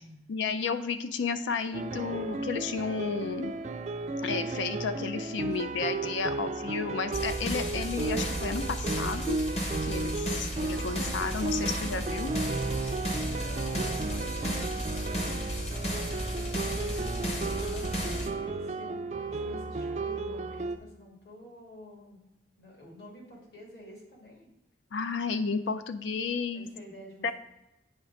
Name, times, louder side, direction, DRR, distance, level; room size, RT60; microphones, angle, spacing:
voice 1, 0.3-3.5 4.2-9.4 9.9-12.3 24.9-26.7 27.2-27.3, left 5 dB, 85° left, 11 dB, 0.4 m, -32 dB
sound 1, 1.7-20.8, right 3 dB, 40° right, 0.3 m, -34 dB
sound 2, 7.1-18.3, equal, 35° left, 0.9 m, -34 dB
voice 2, 13.2-22.2 22.6-24.5 26.5-27.3, left 1 dB, 60° left, -2 dB, 2.1 m, -49 dB
8.0 x 3.3 x 5.7 m, 0.91 s
head